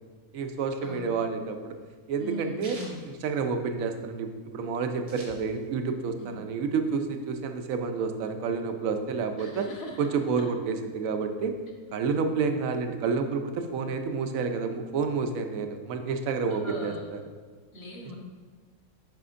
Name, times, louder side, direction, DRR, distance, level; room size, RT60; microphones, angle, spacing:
voice 1, 0.3-1.8 2.1-2.8 3.1-9.7 10.0-11.5 11.9-17.2, right 5 dB, 75° right, 6 dB, 1.0 m, -29 dB
sound 1, 0.9-4.0 4.4-4.5 4.6-5.9 6.3-7.4, right 2 dB, 90° right, 2.1 m, -48 dB
voice 2, 2.2-3.0 6.1-6.3 9.4-10.0 16.6-17.0 17.7-18.1, equal, 45° left, -2 dB, 1.5 m, -40 dB
9.2 x 5.9 x 2.6 m, 1.5 s
omnidirectional pair, 1.5 m